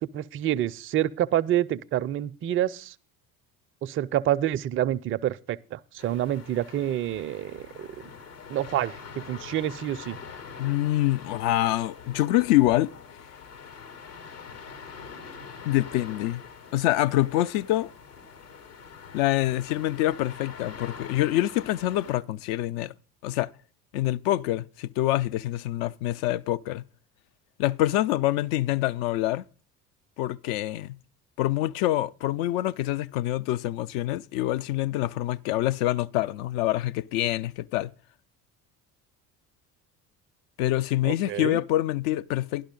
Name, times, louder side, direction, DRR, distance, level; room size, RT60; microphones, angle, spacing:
voice 1, 0.0-2.9 3.8-8.1 8.5-10.2 41.0-41.6, right 12 dB, 30° right, 0.4 m, -28 dB
sound 1, 6.0-22.1, left 6 dB, 80° left, 2.1 m, -44 dB
voice 2, 10.6-12.9 15.6-16.4 16.7-17.9 19.1-22.9 23.2-23.5 23.9-26.8 27.6-29.4 30.2-31.0 31.4-37.9 40.6-42.6, left 15 dB, 55° left, 0.5 m, -26 dB
11.5 x 11.5 x 3.8 m
figure-of-eight pair, 60°, 46 cm